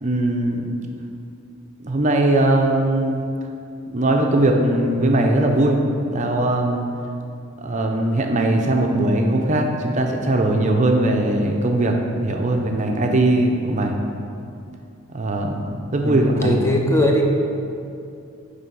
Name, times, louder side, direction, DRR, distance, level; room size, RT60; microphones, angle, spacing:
voice 1, 0.0-0.7 1.8-3.2 3.9-6.9 7.6-13.9 15.1-16.6, right 1 dB, 35° right, 2 dB, 0.6 m, -20 dB
voice 2, 16.0-17.2, left 1 dB, 15° left, 0 dB, 0.6 m, -20 dB
9.6 x 3.4 x 5.5 m, 2.5 s
head